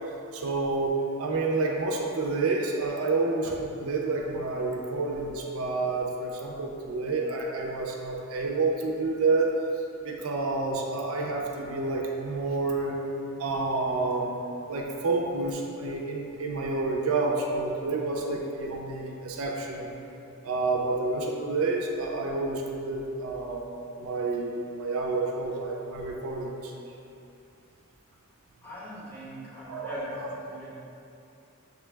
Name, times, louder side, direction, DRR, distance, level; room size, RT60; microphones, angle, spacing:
voice 1, 0.3-9.5 10.0-13.0 13.4-14.3 14.7-19.9 20.4-23.7 24.0-26.7 29.7-30.3, right 3 dB, 75° right, 0 dB, 0.5 m, -29 dB
voice 2, 28.6-30.7, equal, 10° left, -10 dB, 1.0 m, -41 dB
6.5 x 2.2 x 3.2 m, 2.7 s
head